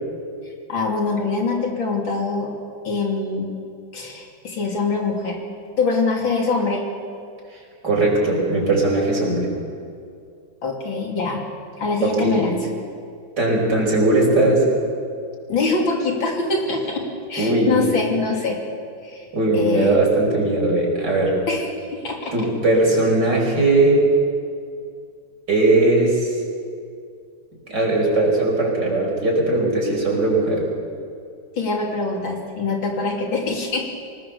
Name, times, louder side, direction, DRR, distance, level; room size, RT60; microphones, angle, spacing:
voice 1, 0.7-2.5 2.8-3.5 3.9-5.4 5.8-6.9 10.6-11.4 11.8-12.6 15.5-17.0 17.3-18.6 19.0-19.3 19.5-20.0 21.5-22.3 31.6-34.0, left 3 dB, 80° left, 0 dB, 3.7 m, -24 dB
voice 2, 7.8-9.5 12.0-12.5 13.4-14.6 17.4-17.8 19.3-21.4 22.3-24.0 25.5-26.4 27.7-30.6, right 2 dB, 60° right, -1 dB, 6.1 m, -19 dB
25.0 x 19.5 x 7.1 m, 2.3 s
omnidirectional pair, 2.1 m